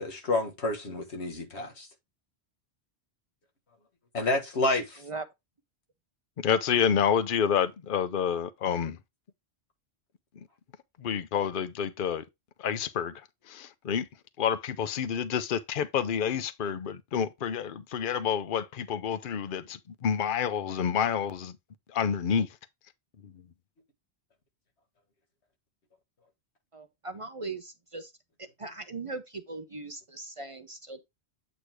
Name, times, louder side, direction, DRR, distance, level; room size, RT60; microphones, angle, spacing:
voice 1, 0.0-1.9 4.1-5.0, left 2 dB, 90° left, 1.9 m, -29 dB
voice 2, 6.4-9.0 10.4-10.5 11.0-12.2 12.6-13.1 13.5-14.1 14.4-21.5 21.9-22.5 23.2-23.3, left 7 dB, 55° left, 0.8 m, -28 dB
voice 3, 26.7-28.1 28.6-31.0, right 3 dB, 35° right, 0.6 m, -39 dB
8.4 x 2.8 x 4.7 m
omnidirectional pair, 1.1 m